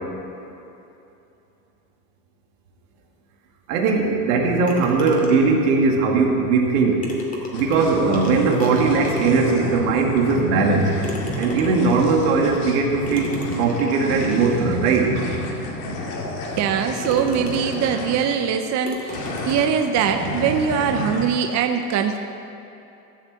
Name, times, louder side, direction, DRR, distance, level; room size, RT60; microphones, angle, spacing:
voice 1, 3.7-7.1 7.5-10.9 11.4-15.1, right 4 dB, 75° right, 1 dB, 2.2 m, -19 dB
sound 1, 4.7-5.6 6.7-6.8 7.0-9.6 10.2-10.3 11.0-12.0 13.1-14.6 15.3-15.4 15.9-16.0 16.5-16.7 17.0-18.3 18.9-20.0, left 2 dB, 15° left, 2.5 m, -35 dB
sound 2, 7.5-18.3 19.1-21.3, left 1 dB, 75° left, 2.6 m, -31 dB
voice 2, 16.6-22.2, right 7 dB, 35° right, 6 dB, 0.7 m, -22 dB
15.0 x 6.2 x 7.6 m, 2.8 s
supercardioid pair, 115°, 46 cm